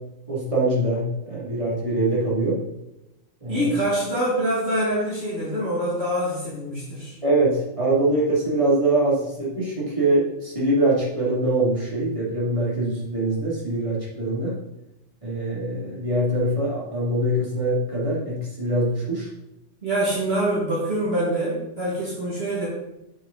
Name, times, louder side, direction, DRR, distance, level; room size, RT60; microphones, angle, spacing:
voice 1, 0.3-2.6 3.4-3.7 7.2-14.5 15.2-19.3, right 1 dB, 25° right, -7 dB, 2.6 m, -23 dB
voice 2, 3.5-7.2 19.8-22.7, right 1 dB, 50° right, -7 dB, 2.0 m, -25 dB
7.1 x 6.3 x 3.9 m, 0.93 s
omnidirectional pair, 1.4 m